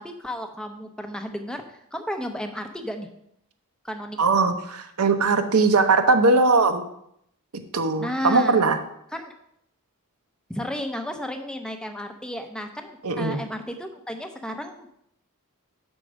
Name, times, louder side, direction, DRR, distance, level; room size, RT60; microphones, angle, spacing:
voice 1, 0.0-1.6 1.9-3.1 3.8-4.2 8.0-8.6 9.1-9.3 10.5-15.0, equal, 5° left, 5 dB, 0.6 m, -33 dB
voice 2, 4.2-6.8 7.7-8.8 13.0-13.4, right 3 dB, 80° right, 8 dB, 0.8 m, -20 dB
6.2 x 4.5 x 6.2 m, 0.74 s
head